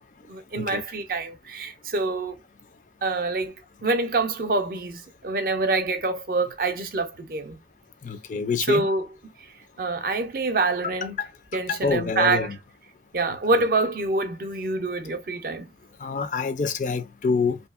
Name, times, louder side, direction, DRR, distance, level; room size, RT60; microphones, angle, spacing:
voice 1, 0.3-2.4 3.0-3.5 3.8-7.6 8.7-9.1 9.8-11.2 11.5-12.5 13.1-15.7, right 3 dB, 50° right, 0.6 m, -26 dB
voice 2, 8.0-8.9 11.2-11.3 11.7-12.6 16.0-17.6, left 5 dB, 45° left, 0.4 m, -26 dB
2.7 x 2.7 x 2.4 m
head